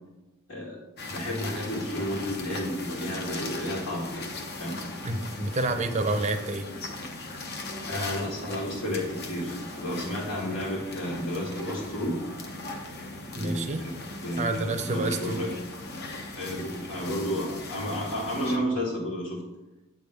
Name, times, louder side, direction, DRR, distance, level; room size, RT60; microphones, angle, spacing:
sound 1, 1.0-18.6, left 2 dB, 50° left, 0.9 m, -39 dB
voice 1, 1.1-4.2 4.6-4.8 7.9-12.2 13.3-13.9 14.2-15.5 16.3-19.4, equal, 75° left, -7 dB, 1.7 m, -31 dB
voice 2, 5.0-6.7 13.4-13.8 14.4-15.4, right 2 dB, 35° right, 7 dB, 0.6 m, -28 dB
8.4 x 3.5 x 6.5 m, 1.0 s
head